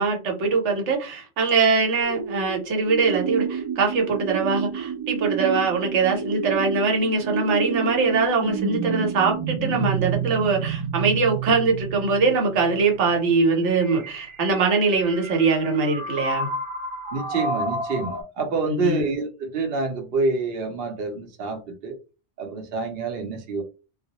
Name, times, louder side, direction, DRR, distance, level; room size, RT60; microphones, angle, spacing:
voice 1, 0.0-16.5 18.7-19.0, right 4 dB, 85° right, 1.1 m, -22 dB
sound 1, 2.0-18.2, right 5 dB, 45° right, 0.3 m, -30 dB
voice 2, 17.1-21.9 22.4-23.6, right 4 dB, 60° right, 0.8 m, -27 dB
2.2 x 2.0 x 2.8 m
omnidirectional pair, 1.2 m